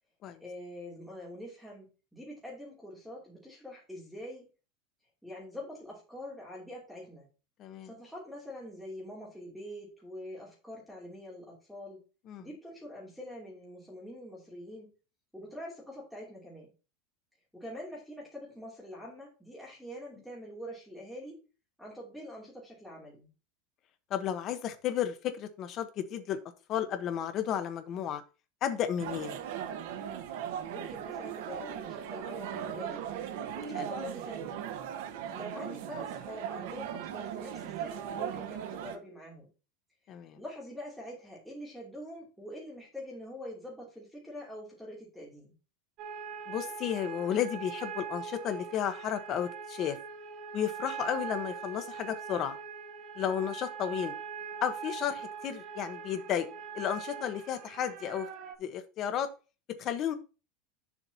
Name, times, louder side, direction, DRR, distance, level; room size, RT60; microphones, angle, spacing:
voice 1, 0.4-4.5 5.2-7.3 7.8-12.0 12.4-14.9 15.3-16.7 17.5-21.4 21.8-23.3 30.7-33.0 33.5-34.7 35.3-39.5 40.4-45.5, left 1 dB, ahead, -3 dB, 2.9 m, -45 dB
voice 2, 24.1-26.4 26.7-28.2 28.6-29.4 33.7-33.9 40.1-40.4 46.5-50.0 50.5-52.6 53.2-54.1 54.6-56.5 56.7-58.3 58.6-59.3 59.8-60.1, left 9 dB, 30° left, 8 dB, 1.1 m, -33 dB
sound 1, 29.0-39.0, right 9 dB, 65° right, 1.1 m, -38 dB
sound 2, 46.0-58.5, right 7 dB, 35° right, 1.3 m, -42 dB
9.8 x 7.1 x 2.9 m, 0.32 s
supercardioid pair, 180°, 0 cm